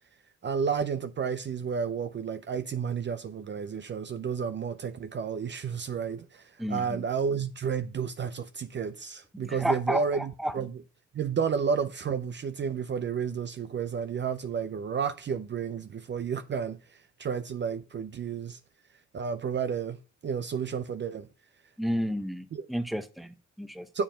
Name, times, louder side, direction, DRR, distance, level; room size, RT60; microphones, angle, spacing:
voice 1, 0.4-10.8 11.1-16.8 17.2-18.6 19.1-21.3 22.5-22.7 23.9-24.0, right 6 dB, 40° right, 0.5 m, -31 dB
voice 2, 6.6-7.0 9.4-10.5 21.8-23.9, equal, ahead, 0.7 m, -32 dB
7.3 x 4.7 x 5.0 m
cardioid pair, 90°, 30 cm